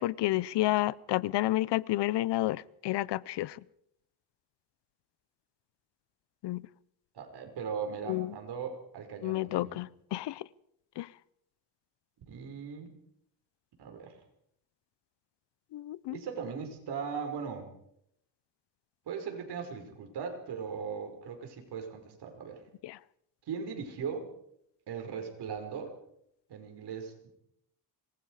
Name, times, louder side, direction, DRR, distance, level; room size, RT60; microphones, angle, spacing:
voice 1, 0.0-3.6 6.4-6.6 8.1-8.3 9.2-10.4 11.0-11.1 15.7-16.2 22.8-23.0, left 16 dB, 70° left, 0.8 m, -30 dB
voice 2, 7.1-9.8 12.3-12.9 13.8-14.2 16.1-17.7 19.1-22.6 23.5-24.3 24.9-25.9 26.5-27.3, right 6 dB, 65° right, 5.5 m, -39 dB
26.5 x 21.5 x 4.9 m
cardioid pair, 120°, 42 cm